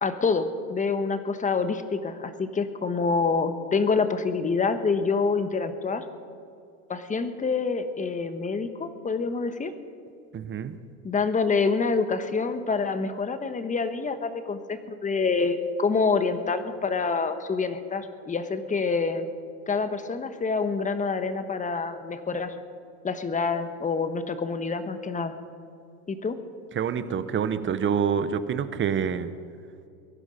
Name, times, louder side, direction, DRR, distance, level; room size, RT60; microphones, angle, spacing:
voice 1, 0.0-6.1 6.9-9.7 11.0-19.3 19.7-22.5 23.0-25.3 26.1-26.4, left 4 dB, 15° left, 10 dB, 1.2 m, -27 dB
voice 2, 10.3-10.8 26.8-29.3, right 7 dB, 25° right, 12 dB, 0.9 m, -27 dB
22.5 x 11.5 x 5.1 m, 2.5 s
supercardioid pair, 110°, 45 cm